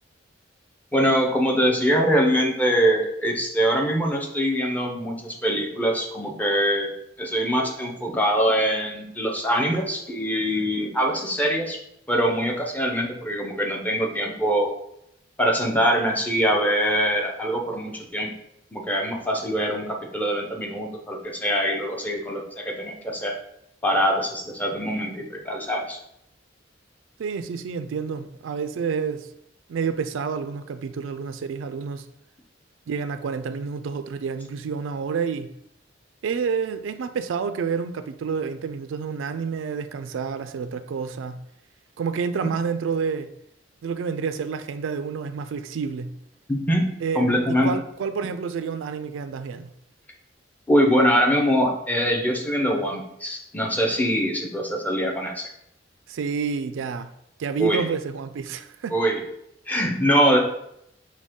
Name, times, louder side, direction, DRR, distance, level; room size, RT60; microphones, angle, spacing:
voice 1, 0.9-6.9 7.2-11.8 12.1-14.7 15.4-18.3 18.7-23.3 23.8-26.0 46.5-47.7 50.7-55.5 57.6-57.8 58.9-59.2 59.7-60.4, equal, 10° left, 0.7 m, -23 dB
voice 2, 27.2-29.3 29.7-32.1 32.9-35.5 36.2-41.5 42.0-43.3 43.8-46.2 47.0-49.7 56.1-57.1 57.4-59.0, right 6 dB, 90° right, 0.3 m, -29 dB
6.1 x 2.2 x 3.6 m
head